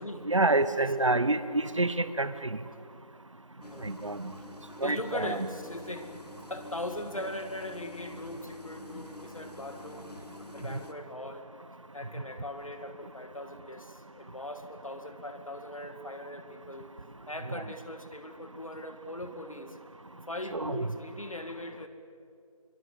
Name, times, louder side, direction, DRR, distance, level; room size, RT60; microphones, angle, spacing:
voice 1, 0.3-2.3 3.8-4.3 4.8-5.5 20.5-20.9, right 2 dB, 50° right, 13 dB, 1.0 m, -27 dB
sound 1, 3.6-10.9, left 2 dB, 90° left, 2.1 m, -48 dB
voice 2, 4.8-6.1 6.5-10.1 10.5-11.5 11.9-16.9 17.3-19.8 20.3-21.9, left 1 dB, 60° left, 8 dB, 2.3 m, -40 dB
24.5 x 23.5 x 7.7 m, 2.4 s
figure-of-eight pair, 175°, 20 cm